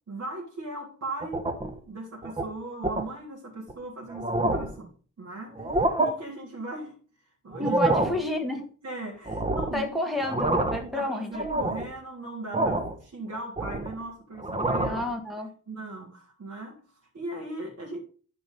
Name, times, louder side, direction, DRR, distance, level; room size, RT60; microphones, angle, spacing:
voice 1, 0.1-1.5 1.9-7.0 7.4-8.1 8.8-10.0 10.7-15.1 15.7-16.8 17.1-18.0, right 2 dB, 55° right, -3 dB, 3.3 m, -38 dB
sound 1, 1.2-1.8 2.2-2.4 2.8-3.1 3.7-3.8 4.1-4.8 5.5-6.1 7.5-8.2 9.3-9.8 10.2-10.9 11.3-11.9 12.5-13.0 13.3-14.0 14.4-15.0, right 2 dB, 20° right, 1.1 m, -27 dB
voice 2, 7.6-8.7 9.7-11.5 14.8-15.5, left 2 dB, ahead, 2 dB, 2.2 m, -30 dB
12.0 x 5.0 x 5.4 m, 0.40 s
wide cardioid pair, 160°, 30 cm